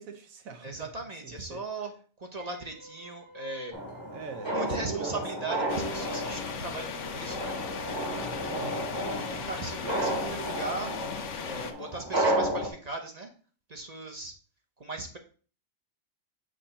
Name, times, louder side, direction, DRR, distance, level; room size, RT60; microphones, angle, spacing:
voice 1, 0.0-0.9 1.2-1.6 4.1-5.2 8.5-8.9, right 5 dB, 85° right, 6 dB, 1.4 m, -41 dB
voice 2, 0.6-1.9 2.2-3.8 4.5-7.6 9.1-10.9 11.4-13.3 13.7-14.3 14.8-15.2, right 3 dB, 35° right, 4 dB, 0.8 m, -38 dB
sound 1, 2.4-10.3, right 1 dB, 55° right, 2.7 m, -48 dB
sound 2, 3.7-12.7, right 1 dB, 20° right, 1.3 m, -32 dB
sound 3, 5.7-11.7, left 7 dB, 70° left, 1.0 m, -37 dB
6.4 x 2.9 x 5.6 m, 0.40 s
omnidirectional pair, 1.4 m